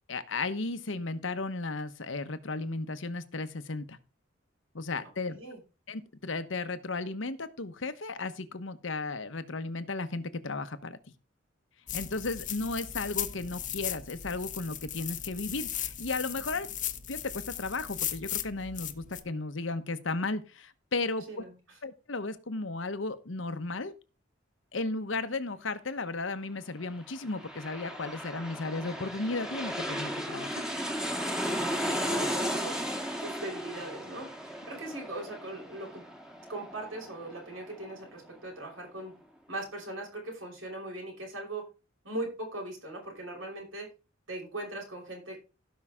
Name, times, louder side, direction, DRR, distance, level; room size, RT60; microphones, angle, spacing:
voice 1, 0.1-4.0 4.7-5.4 5.9-11.0 11.9-16.7 17.1-21.2 21.8-23.9 24.7-30.6, left 3 dB, 70° left, 11 dB, 1.1 m, -34 dB
voice 2, 5.3-5.6 16.5-16.6 21.3-21.8 32.1-32.9 33.2-36.1 36.5-39.1 39.5-41.6 42.0-43.9 44.3-45.4, right 2 dB, 80° right, 0 dB, 5.6 m, -40 dB
sound 1, 11.9-19.2, left 11 dB, 40° left, 0.9 m, -37 dB
sound 2, 27.0-38.4 38.7-38.8, equal, 5° right, 1.6 m, -35 dB
17.0 x 5.7 x 3.6 m, 0.31 s
head